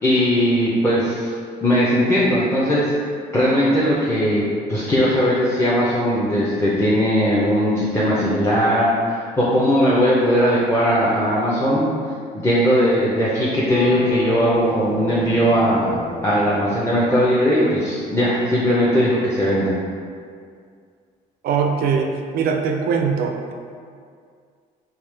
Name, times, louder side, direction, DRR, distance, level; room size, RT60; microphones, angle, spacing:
voice 1, 0.0-1.3 1.6-2.9 3.3-11.9 12.3-19.7, equal, 15° left, -9 dB, 0.6 m, -19 dB
sound 1, 13.7-17.4, left 3 dB, 90° left, 0.6 m, -29 dB
voice 2, 21.4-23.5, right 5 dB, 65° right, 3 dB, 0.4 m, -21 dB
3.6 x 2.9 x 3.2 m, 2.1 s
cardioid pair, 110°, 17 cm